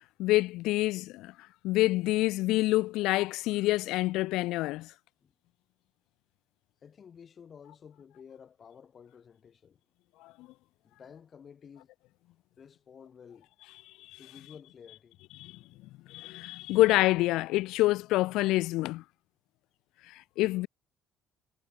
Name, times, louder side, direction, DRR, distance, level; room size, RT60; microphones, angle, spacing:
voice 1, 0.2-1.3 1.6-4.9 10.2-10.5 14.0-14.2 15.4-15.6 16.1-19.0 20.1-20.7, left 18 dB, 80° left, 0.5 m, -27 dB
voice 2, 6.8-9.8 10.8-11.9 12.6-13.5 14.2-15.2, left 7 dB, 35° left, 6.3 m, -52 dB
cardioid pair, 135°, 0 cm